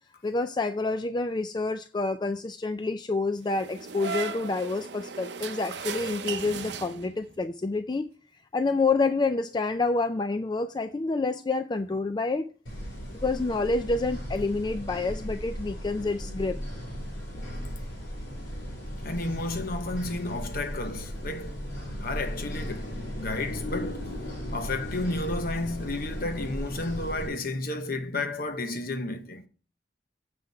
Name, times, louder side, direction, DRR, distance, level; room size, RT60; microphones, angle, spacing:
voice 1, 0.2-8.1 8.5-12.5 13.2-16.6, left 3 dB, 25° left, 0.4 m, -28 dB
sound 1, 3.5-7.4, right 5 dB, 65° right, 0.7 m, -36 dB
sound 2, 12.7-27.3, equal, 75° left, 3.8 m, -36 dB
voice 2, 19.0-21.6 22.0-24.1 24.5-29.4, left 2 dB, 50° left, 1.0 m, -32 dB
7.7 x 5.8 x 5.5 m
head